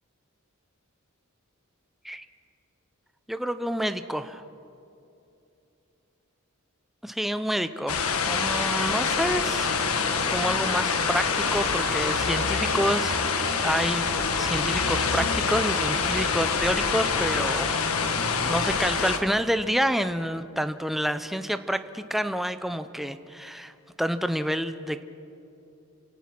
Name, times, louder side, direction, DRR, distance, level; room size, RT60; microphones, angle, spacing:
voice 1, 3.3-4.4 7.0-14.1 14.4-17.7 18.0-23.7 24.0-25.0, equal, ahead, 10 dB, 0.6 m, -28 dB
sound 1, 7.9-19.2, left 5 dB, 85° left, 1.4 m, -26 dB
28.5 x 17.0 x 6.0 m, 2.7 s
head